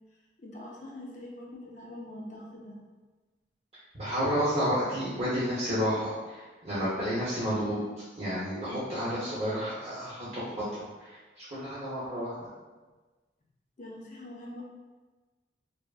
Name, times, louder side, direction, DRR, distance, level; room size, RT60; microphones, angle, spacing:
voice 1, 0.4-2.8 13.8-14.6, left 1 dB, 40° left, -2 dB, 0.5 m, -43 dB
voice 2, 3.9-7.8 8.2-12.5, equal, 35° right, -10 dB, 0.7 m, -31 dB
2.7 x 2.4 x 2.3 m, 1.3 s
head